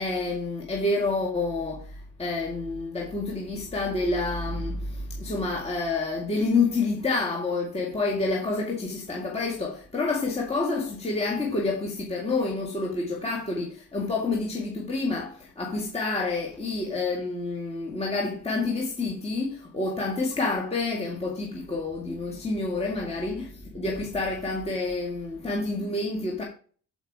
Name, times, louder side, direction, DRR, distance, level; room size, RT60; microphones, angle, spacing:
voice 1, 0.0-26.4, left 3 dB, 15° left, 2.0 m, -28 dB
13.0 x 5.0 x 4.7 m
cardioid pair, 150°, 38 cm